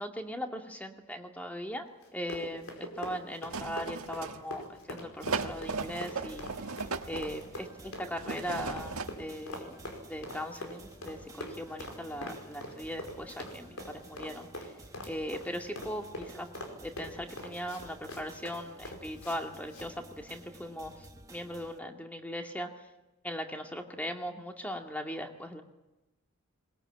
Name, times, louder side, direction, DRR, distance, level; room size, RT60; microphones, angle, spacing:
voice 1, 0.0-6.5 7.1-9.8 10.1-14.7 15.0-16.5 16.8-22.7 23.2-25.6, equal, 5° left, 4 dB, 2.1 m, -39 dB
Run, 2.0-19.4 19.7-19.9, left 1 dB, 75° left, 5.0 m, -43 dB
sound 1, 3.5-4.6 5.2-7.3 8.2-9.2 9.5-9.6, right 4 dB, 85° right, 1.5 m, -37 dB
sound 2, 5.8-21.8, right 2 dB, 15° right, 1.2 m, -53 dB
21.5 x 21.0 x 8.9 m, 1.0 s
head